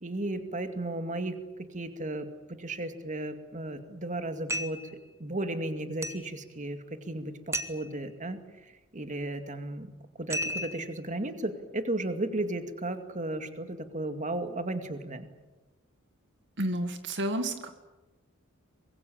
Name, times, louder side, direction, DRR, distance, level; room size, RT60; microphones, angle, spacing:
voice 1, 0.0-1.4 1.7-2.3 2.6-4.8 5.2-15.3, right 2 dB, 35° right, 7 dB, 2.2 m, -34 dB
sound 1, 4.5-4.9 6.0-6.3 7.5-7.9 10.3-10.9, equal, 15° right, 1.6 m, -33 dB
voice 2, 16.6-17.7, right 1 dB, 55° right, 7 dB, 2.0 m, -30 dB
24.5 x 22.0 x 8.8 m, 1.1 s
head